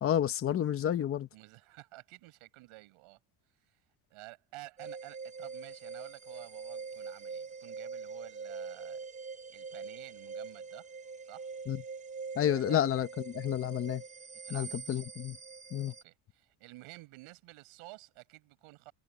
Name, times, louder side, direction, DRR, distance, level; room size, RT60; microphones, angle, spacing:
voice 1, 0.0-1.3 11.7-11.8 12.3-14.0 14.5-15.4 15.7-15.9, left 10 dB, 30° left, 0.8 m, -30 dB
voice 2, 1.3-3.2 3.6-3.8 4.1-9.1 9.5-10.9 11.2-11.5 12.4-12.8 14.4-15.0 16.0-18.9, right 20 dB, 85° right, 7.1 m, -52 dB
sound 1, 4.8-16.0, right 5 dB, 15° right, 0.7 m, -44 dB
cardioid pair, 170°, 48 cm